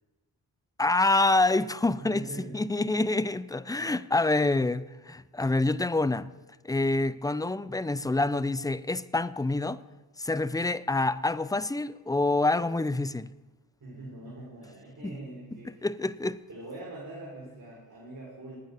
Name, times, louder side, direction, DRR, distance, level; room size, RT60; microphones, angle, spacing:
voice 1, 0.8-2.2 2.5-6.3 6.6-9.8 10.2-13.3 15.8-16.4, left 2 dB, 10° left, 0.5 m, -26 dB
voice 2, 2.0-2.6 3.7-4.0 13.8-15.9 16.5-18.6, right 1 dB, 40° right, 4.5 m, -43 dB
20.5 x 9.2 x 3.5 m
supercardioid pair, 45°, 45 cm